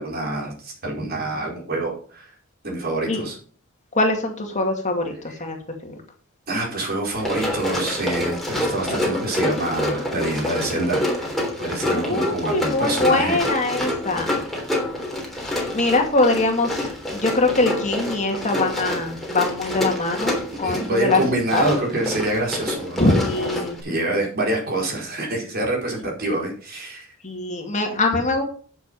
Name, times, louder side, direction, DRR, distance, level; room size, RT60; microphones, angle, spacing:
voice 1, 0.0-2.3 2.6-3.4 6.5-13.4 20.6-23.5 23.8-27.1, right 1 dB, 45° right, -1 dB, 4.9 m, -26 dB
voice 2, 3.9-5.6 5.8-6.0 11.9-14.4 15.4-21.2 21.5-21.8 23.0-23.8 27.2-28.4, left 2 dB, 35° left, 2 dB, 2.2 m, -23 dB
Run, 7.1-23.8, left 1 dB, ahead, 3.4 m, -27 dB
10.5 x 7.1 x 5.4 m, 0.43 s
head